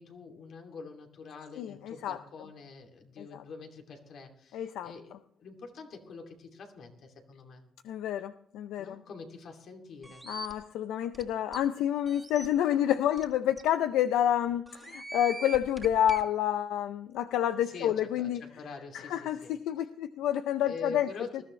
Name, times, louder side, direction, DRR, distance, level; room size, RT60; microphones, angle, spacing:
voice 1, 0.0-5.1 5.4-7.6 8.8-10.2 17.6-19.5 20.6-21.4, left 4 dB, 65° left, 3 dB, 2.6 m, -45 dB
voice 2, 1.6-2.2 3.2-3.4 4.5-4.9 7.8-9.0 10.3-18.4 18.9-21.1 21.3-21.4, left 11 dB, 90° left, 11 dB, 0.5 m, -29 dB
sound 1, 10.0-10.5 11.1-11.2 11.5-11.6 12.1-12.5 13.2-13.3 13.6-13.7 14.7-16.2, right 2 dB, 10° right, 1.9 m, -41 dB
20.0 x 13.0 x 3.2 m, 0.63 s
cardioid pair, 90°, 0 cm